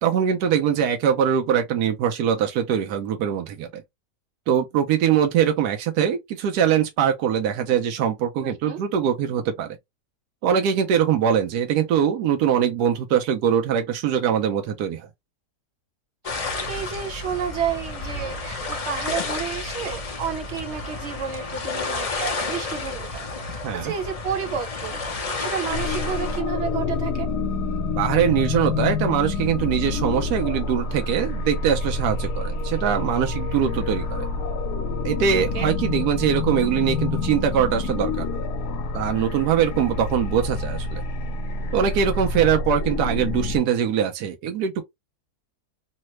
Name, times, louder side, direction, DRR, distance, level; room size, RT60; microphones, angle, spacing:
voice 1, 0.0-3.8 4.5-9.7 10.4-15.0 23.6-23.9 28.0-34.3 35.0-38.2 38.9-41.0 41.7-44.8, right 8 dB, 85° right, 1.1 m, -22 dB
voice 2, 8.4-8.8 16.3-27.3 35.5-35.7, right 7 dB, 55° right, 0.9 m, -31 dB
sound 1, 16.2-26.4, left 3 dB, 50° left, 0.4 m, -31 dB
sound 2, 25.7-43.6, left 3 dB, 90° left, 1.2 m, -27 dB
3.2 x 2.1 x 2.9 m
omnidirectional pair, 1.7 m